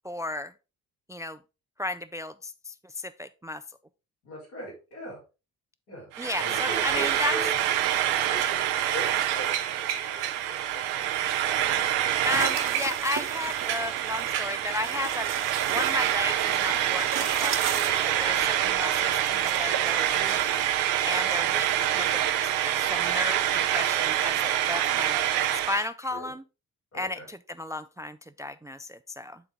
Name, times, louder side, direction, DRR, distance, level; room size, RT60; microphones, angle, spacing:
voice 1, 0.0-0.5 1.1-1.4 1.8-3.6 6.2-7.4 12.2-15.3 15.7-20.4 21.0-22.5 22.8-25.2 25.7-26.4 26.9-29.4, left 2 dB, 10° right, 0.3 m, -34 dB
voice 2, 4.2-5.2 5.9-6.1 6.4-7.5 8.3-10.9 18.0-18.4 26.1-26.3 26.9-27.3, right 1 dB, 85° left, 4.1 m, -39 dB
Frying (food), 6.1-25.9, right 11 dB, 80° right, 0.7 m, -26 dB
sound 1, 11.7-20.7, right 7 dB, 50° right, 1.1 m, -37 dB
9.1 x 3.9 x 3.5 m
hypercardioid pair, 40°, 41 cm